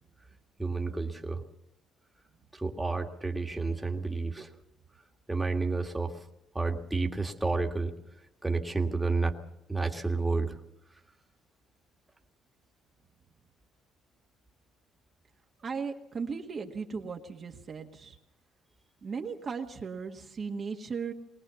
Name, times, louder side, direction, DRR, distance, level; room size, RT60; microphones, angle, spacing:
voice 1, 0.6-1.4 2.5-4.5 5.3-6.2 6.5-7.9 8.4-9.3 9.7-10.6, right 3 dB, 10° right, 3 dB, 1.9 m, -30 dB
voice 2, 15.6-18.2 19.0-21.1, right 5 dB, 40° right, 2 dB, 1.7 m, -37 dB
21.5 x 18.5 x 7.0 m, 0.81 s
cardioid pair, 95°, 0 cm